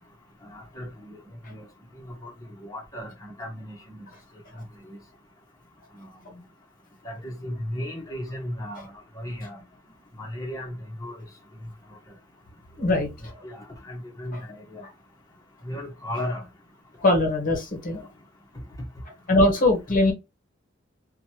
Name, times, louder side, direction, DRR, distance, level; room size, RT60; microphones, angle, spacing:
voice 1, 0.4-1.2 1.5-1.7 2.0-2.3 2.6-4.1 4.8-5.0 6.0-6.4 7.0-9.6 10.2-11.2 13.4-14.8 15.6-16.4 17.9-18.1, left 1 dB, 20° left, 1.0 m, -36 dB
voice 2, 12.8-13.1 17.0-18.0 19.3-20.1, left 2 dB, 45° left, 0.9 m, -21 dB
2.9 x 2.3 x 2.8 m
head